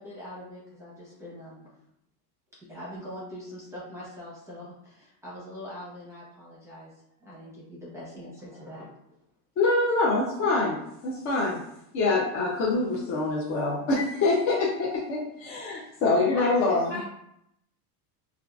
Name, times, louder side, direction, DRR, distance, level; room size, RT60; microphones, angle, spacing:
voice 1, 0.0-1.7 2.7-6.9 7.2-8.9, left 1 dB, 5° right, -7 dB, 0.7 m, -42 dB
voice 2, 9.6-11.6 11.9-17.0, left 3 dB, 35° left, -5 dB, 0.4 m, -25 dB
voice 3, 16.3-17.0, left 3 dB, 70° left, -4 dB, 1.5 m, -34 dB
3.5 x 2.4 x 2.3 m, 0.78 s
supercardioid pair, 145°, 48 cm